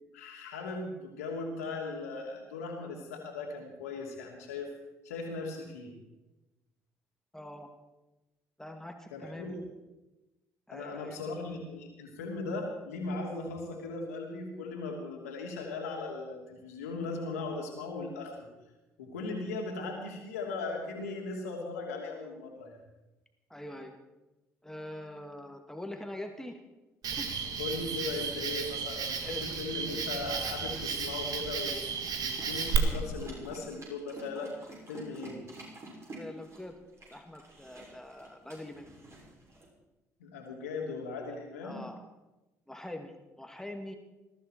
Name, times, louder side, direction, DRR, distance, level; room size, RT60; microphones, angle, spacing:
voice 1, 0.1-4.7 5.0-5.9 9.1-9.6 10.7-18.5 19.0-22.8 27.6-34.5 34.9-35.4 40.2-41.8, left 3 dB, 80° left, 0 dB, 3.0 m, -38 dB
voice 2, 7.3-7.7 8.6-9.6 10.7-11.2 23.5-24.0 24.6-26.6 27.2-27.3 29.2-29.4 36.1-36.8 37.1-38.9 41.6-42.0 42.7-44.0, left 1 dB, 5° left, 4 dB, 2.2 m, -43 dB
Cricket, 27.0-32.8, right 6 dB, 50° right, 1.9 m, -34 dB
sound 1, 32.0-39.7, right 2 dB, 35° right, 6.5 m, -49 dB
20.0 x 14.5 x 4.6 m, 1.0 s
figure-of-eight pair, 50°, 8 cm